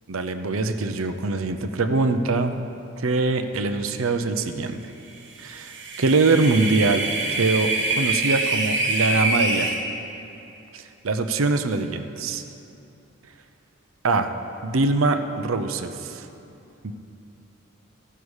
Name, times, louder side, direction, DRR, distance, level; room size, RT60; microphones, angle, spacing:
voice 1, 0.1-2.7 3.0-4.8 5.4-9.7 10.7-12.4 14.0-14.3 14.6-16.3 16.8-16.9, right 3 dB, 85° right, 8 dB, 0.7 m, -23 dB
sound 1, 5.5-9.8, right 2 dB, 60° right, 1.3 m, -25 dB
15.5 x 6.8 x 4.8 m, 2.9 s
head